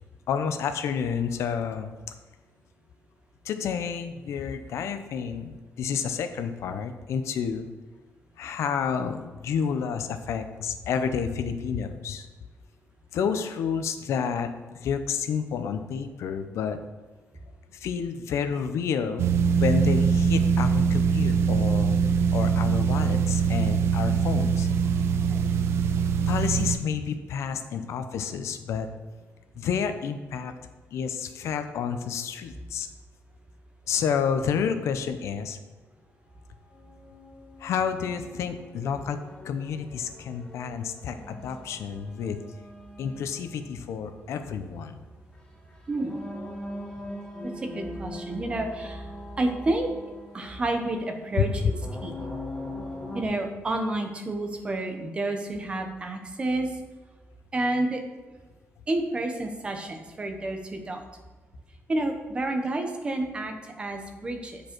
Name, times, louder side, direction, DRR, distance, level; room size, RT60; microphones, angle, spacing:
voice 1, 0.3-1.9 3.4-7.7 8.4-12.3 13.1-16.8 17.7-19.3 19.5-22.0 22.3-24.7 26.3-28.9 29.6-30.5 30.9-32.9 33.9-35.6 37.6-39.2 39.4-42.4 43.0-45.0 51.4-51.7, left 7 dB, 80° left, 8 dB, 0.6 m, -29 dB
sound 1, 19.2-26.8, right 6 dB, 65° right, 0.5 m, -23 dB
sound 2, 36.7-53.2, left 1 dB, 15° left, 1.0 m, -42 dB
voice 2, 45.9-46.2 47.6-49.0 49.4-49.9 50.3-51.7 52.0-52.1 53.1-56.7 57.5-58.0 58.9-61.0 61.9-64.6, right 2 dB, 20° right, 5 dB, 0.8 m, -29 dB
8.4 x 5.1 x 4.5 m, 1.3 s
wide cardioid pair, 180°, 5 cm